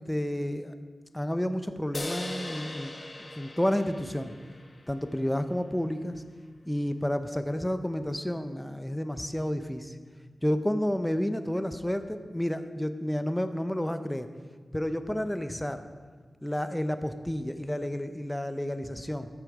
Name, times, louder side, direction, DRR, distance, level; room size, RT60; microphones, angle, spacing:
voice 1, 0.1-0.7 1.1-2.9 3.4-4.3 4.9-6.2 6.7-9.9 10.4-14.3 14.7-15.8 16.4-19.3, equal, 5° left, 9 dB, 0.6 m, -30 dB
sound 1, 1.9-5.4, left 2 dB, 40° left, 1.1 m, -40 dB
14.0 x 6.4 x 4.9 m, 1.5 s
wide cardioid pair, 105°, 0 cm